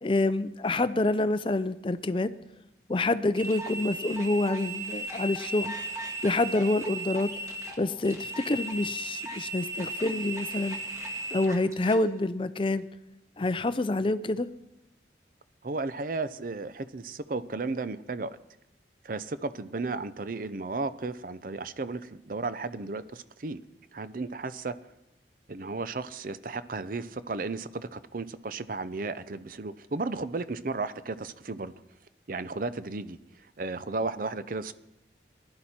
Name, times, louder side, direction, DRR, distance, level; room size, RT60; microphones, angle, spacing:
voice 1, 0.0-2.3 2.9-5.7 6.2-7.3 7.8-10.8 11.3-12.8 13.4-14.5, left 2 dB, 25° left, 13 dB, 0.5 m, -27 dB
sound 1, 3.4-12.0, right 2 dB, 20° right, 1.6 m, -36 dB
voice 2, 15.6-18.3 19.0-23.6 23.9-24.7 25.5-31.7 32.3-34.7, right 3 dB, 45° right, 14 dB, 0.6 m, -34 dB
19.0 x 11.5 x 4.3 m, 0.92 s
head